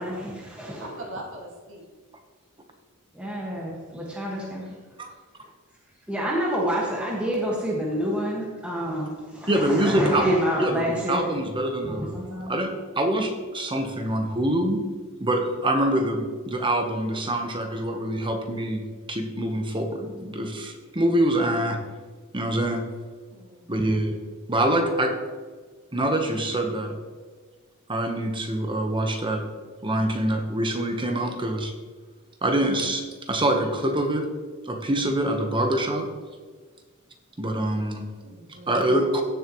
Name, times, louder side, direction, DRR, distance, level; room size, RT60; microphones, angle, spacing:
voice 1, 0.0-0.9 3.1-4.6 6.1-11.3 11.8-12.5, equal, 5° right, -4 dB, 1.7 m, -28 dB
voice 2, 0.8-1.8 23.3-23.7 38.2-38.9, right 1 dB, 60° right, -2 dB, 2.1 m, -41 dB
voice 3, 9.5-12.2 12.5-14.8 15.2-21.8 22.3-22.8 23.7-24.2 24.5-25.1 25.9-27.0 27.9-29.4 29.8-31.7 32.4-34.2 34.7-36.1 37.4-38.0 38.7-39.2, right 1 dB, 25° right, 4 dB, 1.1 m, -25 dB
16.0 x 7.1 x 3.1 m, 1.4 s
head